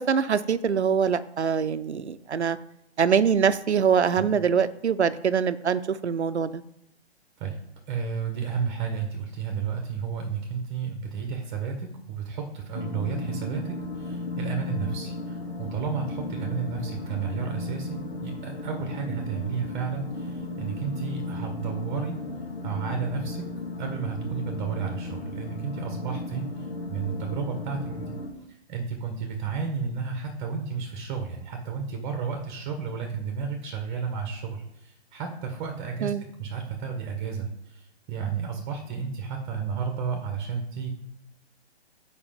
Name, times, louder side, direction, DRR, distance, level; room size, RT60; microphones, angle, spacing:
voice 1, 0.0-2.6 3.0-6.6 36.0-36.2, right 7 dB, 85° right, 14 dB, 0.7 m, -24 dB
voice 2, 7.9-22.2 22.6-23.4 23.8-28.2 28.5-36.1 36.4-40.9, right 6 dB, 20° right, 4 dB, 1.1 m, -32 dB
sound 1, 12.7-28.3, left 2 dB, 65° left, 2.0 m, -35 dB
7.2 x 5.1 x 5.1 m, 0.82 s
figure-of-eight pair, 135°, 33 cm